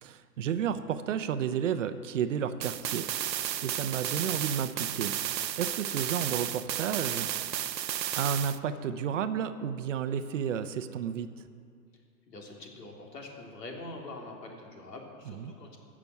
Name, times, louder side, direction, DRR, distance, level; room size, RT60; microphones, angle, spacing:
voice 1, 0.0-3.1 3.3-5.1 5.4-7.3 8.2-11.3 15.3-15.5, right 8 dB, 50° right, 11 dB, 0.7 m, -32 dB
sound 1, 2.6-8.6, right 11 dB, 85° right, 0.7 m, -33 dB
voice 2, 12.3-15.8, left 2 dB, 80° left, 0 dB, 3.0 m, -44 dB
15.0 x 6.1 x 8.0 m, 2.3 s
hypercardioid pair, 140°, 49 cm